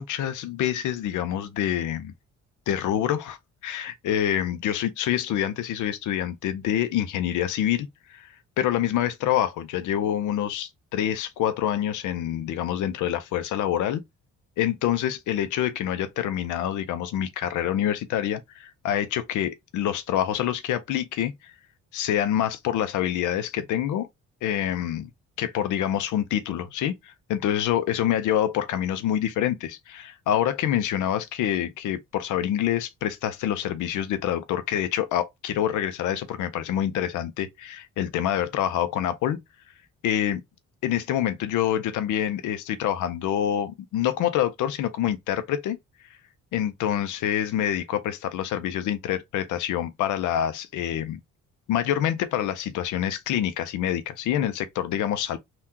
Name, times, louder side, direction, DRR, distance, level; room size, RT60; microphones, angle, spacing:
voice 1, 0.0-2.1 2.7-3.4 3.6-14.0 14.6-21.5 21.9-24.1 24.4-25.1 25.4-39.4 40.0-40.4 40.8-45.8 46.5-51.2 51.7-55.4, left 11 dB, 80° left, 0.5 m, -26 dB
3.6 x 2.3 x 2.7 m
cardioid pair, 90°, 30 cm